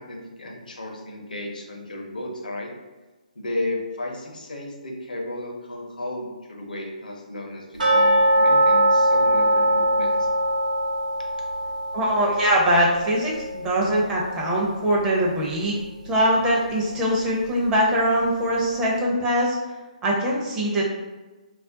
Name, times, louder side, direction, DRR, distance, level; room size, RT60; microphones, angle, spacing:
voice 1, 0.0-2.7 3.4-10.3, left 1 dB, 80° left, 0 dB, 0.6 m, -33 dB
sound 1, 7.8-14.7 14.9-15.0 15.5-15.6 16.2-16.3, right 1 dB, 85° right, 1.0 m, -22 dB
voice 2, 11.9-15.8 16.0-19.6 20.0-20.8, right 1 dB, 15° right, -4 dB, 0.5 m, -22 dB
2.4 x 2.1 x 3.7 m, 1.2 s
figure-of-eight pair, 140°, 4 cm